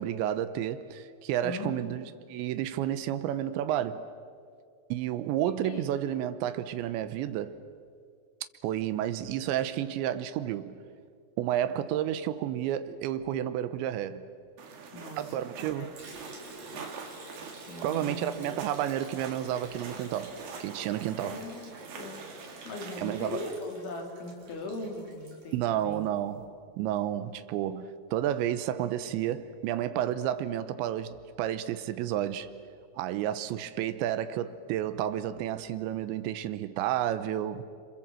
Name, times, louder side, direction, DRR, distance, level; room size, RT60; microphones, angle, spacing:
voice 1, 0.0-4.1 4.9-7.6 8.6-10.8 11.4-14.3 15.2-15.9 17.8-21.4 23.0-23.4 25.5-32.5 33.0-37.6, right 11 dB, 80° right, 2.8 m, -31 dB
voice 2, 1.4-2.0 5.4-5.9 14.9-15.2 15.7-15.9 17.7-18.4 21.2-21.7 22.0-22.2 22.7-26.1, left 2 dB, 65° left, 5.5 m, -39 dB
sound 1, 14.6-23.6, right 5 dB, 55° right, 3.5 m, -45 dB
Liquid, 16.0-26.1, right 2 dB, 40° right, 4.5 m, -49 dB
29.0 x 26.5 x 7.6 m
omnidirectional pair, 5.9 m